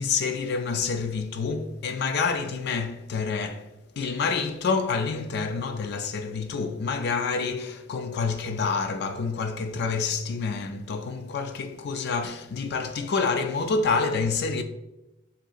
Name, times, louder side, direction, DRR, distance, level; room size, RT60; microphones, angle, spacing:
voice 1, 0.0-3.7 4.0-14.6, left 4 dB, 60° left, 0.4 m, -28 dB
7.5 x 2.8 x 2.4 m
head